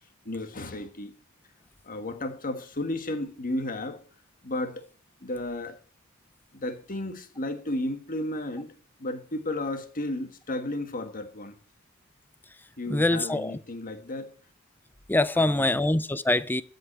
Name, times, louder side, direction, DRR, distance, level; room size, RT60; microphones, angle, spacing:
voice 1, 0.2-1.1 1.8-4.0 4.4-4.9 5.2-5.8 6.5-8.7 9.0-11.6 12.8-14.3 15.4-15.8, left 1 dB, 40° left, 1.6 m, -33 dB
voice 2, 12.9-13.6 15.1-16.6, left 2 dB, 10° left, 0.5 m, -24 dB
13.0 x 5.6 x 8.9 m
head